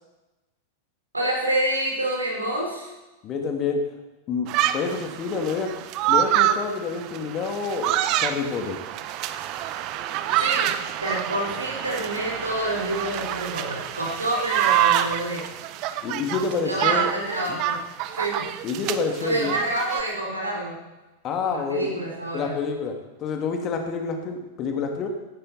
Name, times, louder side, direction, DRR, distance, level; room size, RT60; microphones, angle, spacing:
voice 1, 1.1-2.9 10.3-10.7 11.0-15.4 16.6-17.8 18.1-18.5 19.2-20.8 21.4-22.6, right 1 dB, 80° right, -1 dB, 4.7 m, -28 dB
voice 2, 3.2-3.8 4.3-8.8 16.0-17.1 17.5-17.6 18.6-19.5 21.2-21.9 22.3-22.9 23.2-25.1, left 5 dB, 35° left, 4 dB, 2.6 m, -28 dB
sound 1, 4.5-20.0, right 12 dB, 40° right, 0.9 m, -26 dB
17.5 x 14.5 x 4.4 m, 1.1 s
figure-of-eight pair, 90°, 0 cm